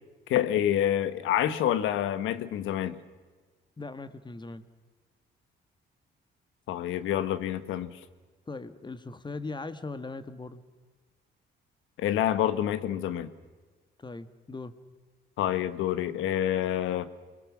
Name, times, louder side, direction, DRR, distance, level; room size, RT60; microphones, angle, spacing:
voice 1, 0.3-3.0 6.7-8.0 12.0-13.3 15.4-17.1, left 11 dB, 90° left, 14 dB, 1.3 m, -27 dB
voice 2, 3.8-4.6 8.5-10.6 14.0-14.7, left 3 dB, 20° left, 12 dB, 1.6 m, -39 dB
28.5 x 20.5 x 7.3 m, 1.4 s
cardioid pair, 90°, 20 cm